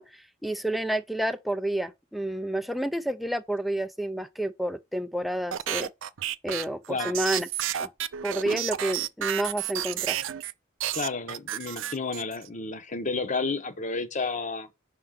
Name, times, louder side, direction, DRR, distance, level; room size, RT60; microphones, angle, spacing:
voice 1, 0.0-5.9 6.4-7.5 7.8-7.9 8.2-10.2, right 1 dB, ahead, 0.4 m, -30 dB
sound 1, 5.5-10.5 10.8-12.5, right 11 dB, 70° right, 0.5 m, -31 dB
voice 2, 10.9-14.7, left 4 dB, 40° left, 0.8 m, -31 dB
5.7 x 3.8 x 5.7 m
head